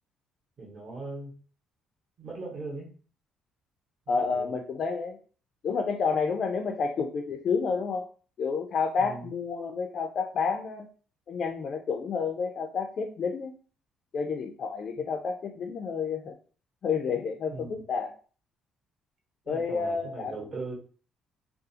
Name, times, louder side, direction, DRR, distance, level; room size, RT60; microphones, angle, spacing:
voice 1, 0.6-1.3 2.2-2.9 4.2-4.6 9.0-9.3 17.5-17.8 19.5-20.7, right 3 dB, 40° right, -1 dB, 0.9 m, -39 dB
voice 2, 4.1-5.2 5.6-8.1 8.4-10.9 11.3-13.5 14.1-16.4 16.8-18.1 19.5-20.4, left 5 dB, 45° left, 4 dB, 0.3 m, -30 dB
2.4 x 2.3 x 2.7 m, 0.40 s
cardioid pair, 135°, 0 cm